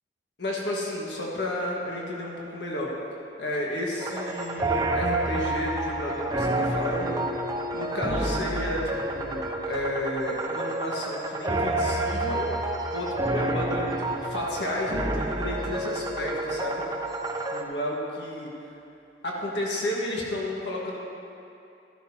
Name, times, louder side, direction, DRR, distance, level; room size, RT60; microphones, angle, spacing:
voice 1, 0.4-2.9 3.4-7.3 7.7-12.6 12.9-16.8 17.5-18.5 19.2-21.0, left 1 dB, 75° left, -3 dB, 1.6 m, -32 dB
sound 1, 4.0-17.6, right 2 dB, 20° right, 0.6 m, -29 dB
14.5 x 11.0 x 2.9 m, 2.7 s
head